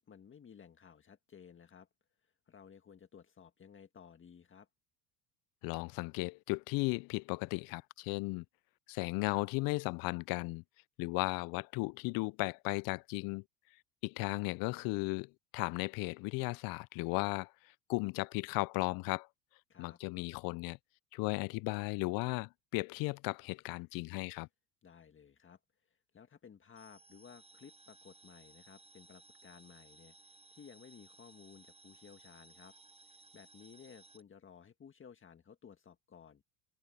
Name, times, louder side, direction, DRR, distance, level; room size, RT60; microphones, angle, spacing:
voice 1, 0.0-1.9 2.2-4.7 19.7-20.0 24.8-25.6 25.9-32.8 33.1-36.4, left 7 dB, 30° left, 1.8 m, -57 dB
voice 2, 5.6-8.4 8.9-10.6 11.0-13.4 14.0-17.5 17.9-19.3 19.8-20.8 21.1-24.5, left 27 dB, 55° left, 0.5 m, -35 dB
sound 1, 26.8-34.2, right 3 dB, 15° right, 7.9 m, -60 dB
hypercardioid pair, 90°, 41 cm